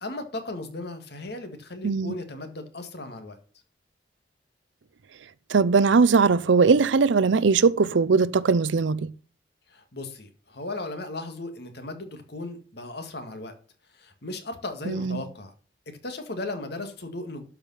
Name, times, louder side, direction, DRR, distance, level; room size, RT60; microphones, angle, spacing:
voice 1, 0.0-3.4 9.7-13.5 13.9-15.5 15.9-17.4, left 2 dB, 65° left, 1.9 m, -36 dB
voice 2, 1.8-2.1 5.5-9.1 14.9-15.2, right 4 dB, 85° right, 0.5 m, -20 dB
12.0 x 5.1 x 5.6 m
head